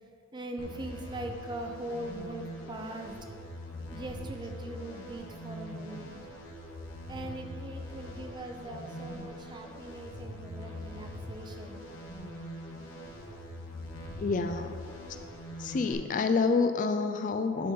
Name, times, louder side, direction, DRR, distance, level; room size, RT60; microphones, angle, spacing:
voice 1, 0.3-3.1 3.9-6.2 7.1-11.8, right 1 dB, 20° right, 4 dB, 0.6 m, -41 dB
sound 1, 0.6-15.9, equal, 70° left, 1.4 m, -43 dB
voice 2, 14.2-14.7 15.6-17.7, left 4 dB, 40° left, 8 dB, 0.3 m, -28 dB
10.0 x 3.8 x 5.5 m, 2.2 s
head